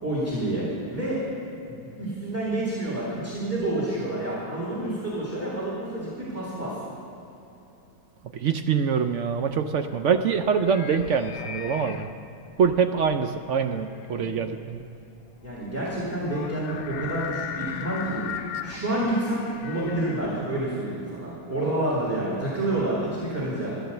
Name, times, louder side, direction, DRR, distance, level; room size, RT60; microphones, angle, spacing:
voice 1, 0.0-1.2 1.6-6.8 15.4-18.2 18.6-23.7, right 1 dB, 10° right, -8 dB, 2.5 m, -28 dB
voice 2, 8.3-12.1 12.6-14.8, right 6 dB, 65° right, 8 dB, 0.7 m, -24 dB
sound 1, 9.3-20.8, left 8 dB, 65° left, 1.1 m, -38 dB
13.5 x 10.0 x 6.9 m, 3.0 s
omnidirectional pair, 1.7 m